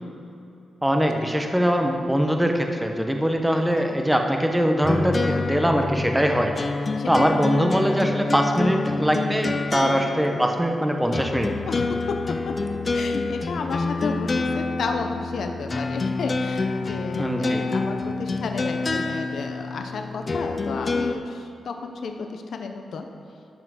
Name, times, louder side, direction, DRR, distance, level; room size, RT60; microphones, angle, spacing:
voice 1, 0.8-6.6 7.1-11.5 17.2-17.7, equal, 5° right, 3 dB, 0.8 m, -22 dB
sound 1, 4.8-21.2, left 3 dB, 30° left, 0.5 m, -27 dB
voice 2, 7.0-7.3 9.8-10.1 11.7-12.0 12.5-23.0, left 4 dB, 65° left, 4 dB, 0.8 m, -32 dB
12.0 x 5.8 x 6.3 m, 2.9 s
wide cardioid pair, 125°, 0 cm